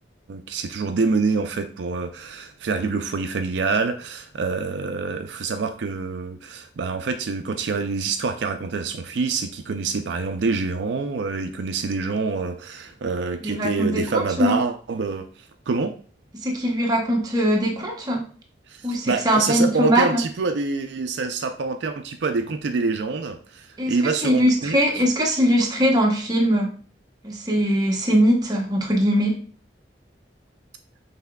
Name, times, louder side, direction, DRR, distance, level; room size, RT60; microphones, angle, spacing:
voice 1, 0.3-16.0 18.7-24.8, right 4 dB, 75° right, 0.4 m, -26 dB
voice 2, 13.4-14.6 16.4-18.3 18.8-20.2 23.8-24.0 24.2-26.8 27.2-29.4, equal, 20° right, 0.7 m, -21 dB
5.7 x 3.4 x 2.2 m
head